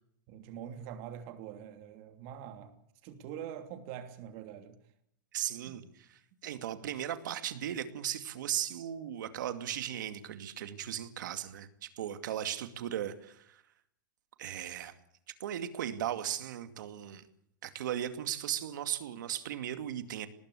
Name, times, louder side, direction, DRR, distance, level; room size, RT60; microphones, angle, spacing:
voice 1, 0.3-2.8 3.0-4.8 5.6-5.8, right 9 dB, 45° right, 2.9 m, -44 dB
voice 2, 5.3-13.6 14.4-14.9 15.4-17.2 17.6-20.3, right 11 dB, 75° right, 2.4 m, -37 dB
19.5 x 19.0 x 8.5 m
supercardioid pair, 145°, 10 cm